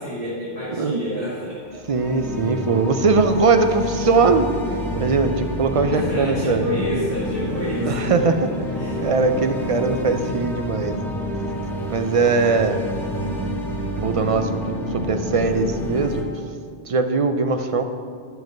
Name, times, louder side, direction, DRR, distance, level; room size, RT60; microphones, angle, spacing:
voice 1, 0.0-1.6 5.9-8.3 8.7-9.0, left 1 dB, 30° right, -11 dB, 2.5 m, -29 dB
sound 1, 1.6-16.2, equal, ahead, 1.2 m, -29 dB
voice 2, 1.9-4.5 5.0-6.7 7.8-8.7 9.0-11.1 11.9-12.8 14.0-14.6 14.9-16.2 16.9-17.8, right 4 dB, 50° right, 7 dB, 0.4 m, -20 dB
sound 2, 3.8-15.9, equal, 55° left, 1.5 m, -34 dB
7.4 x 5.7 x 7.6 m, 2.1 s
omnidirectional pair, 1.2 m